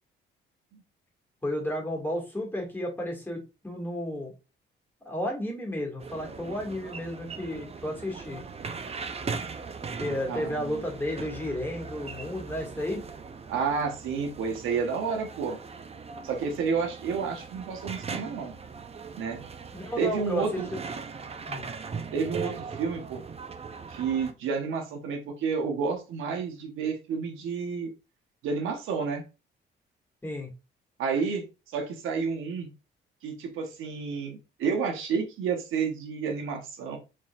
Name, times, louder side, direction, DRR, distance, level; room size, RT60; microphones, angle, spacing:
voice 1, 1.4-4.3 5.0-8.4 10.0-13.1 19.7-20.6 21.4-21.7 30.2-30.5, left 1 dB, 10° left, -2 dB, 2.1 m, -32 dB
sound 1, 6.0-24.3, right 5 dB, 30° right, 0.6 m, -39 dB
voice 2, 10.3-10.8 13.5-15.6 16.2-18.6 19.1-19.4 20.0-20.7 22.1-23.2 23.9-27.9 28.4-29.2 31.0-31.4 31.7-32.7 33.2-37.0, right 5 dB, 85° right, 3 dB, 1.2 m, -30 dB
4.6 x 3.9 x 2.5 m, 0.29 s
cardioid pair, 90°, 20 cm